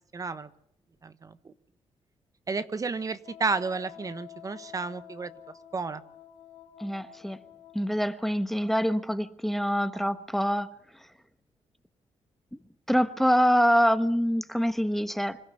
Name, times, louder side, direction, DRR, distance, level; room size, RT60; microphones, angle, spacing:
voice 1, 0.1-0.5 1.0-1.5 2.5-5.3 5.7-6.0, right 4 dB, 35° right, 13 dB, 1.1 m, -32 dB
Wind instrument woodwind instrument, 3.2-7.9, left 11 dB, 85° left, 2.9 m, -49 dB
voice 2, 6.8-7.4 7.7-10.7 12.9-15.4, equal, ahead, 12 dB, 1.1 m, -25 dB
26.0 x 14.5 x 7.0 m, 0.71 s
cardioid pair, 115°, 11 cm